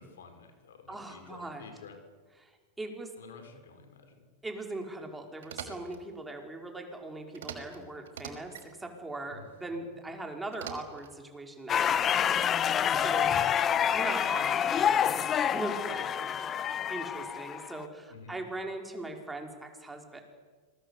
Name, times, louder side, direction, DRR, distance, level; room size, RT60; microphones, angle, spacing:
voice 1, 0.0-2.0 3.2-4.3 9.3-9.5 9.8-9.9 18.1-18.4, left 5 dB, 80° left, 6 dB, 5.5 m, -51 dB
voice 2, 0.9-1.6 2.4-2.5 2.8-3.1 4.4-13.3 13.8-16.3 16.9-20.2, right 2 dB, 10° right, 3 dB, 5.0 m, -40 dB
sound 1, 5.4-6.0 7.3-7.8 8.0-8.7 10.5-11.2, right 7 dB, 75° right, 5.5 m, -43 dB
sound 2, 11.7-17.8, left 9 dB, 30° left, 1.1 m, -27 dB
26.5 x 21.0 x 8.5 m, 1.4 s
hypercardioid pair, 105°, 0 cm